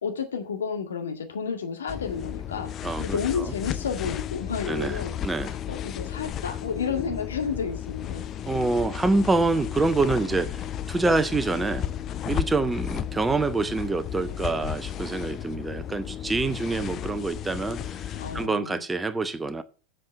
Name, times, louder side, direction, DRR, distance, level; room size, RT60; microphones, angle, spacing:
voice 1, 0.0-2.7 3.0-5.1 5.7-8.3 18.1-18.8, left 6 dB, 65° left, 1.9 m, -31 dB
sound 1, 1.9-18.5, left 10 dB, 30° left, 0.5 m, -34 dB
voice 2, 2.8-3.4 4.6-5.5 6.9-7.2 8.5-11.8 12.2-18.0 18.3-19.6, right 3 dB, 10° right, 0.9 m, -26 dB
7.7 x 6.8 x 7.3 m
figure-of-eight pair, 90°, 0 cm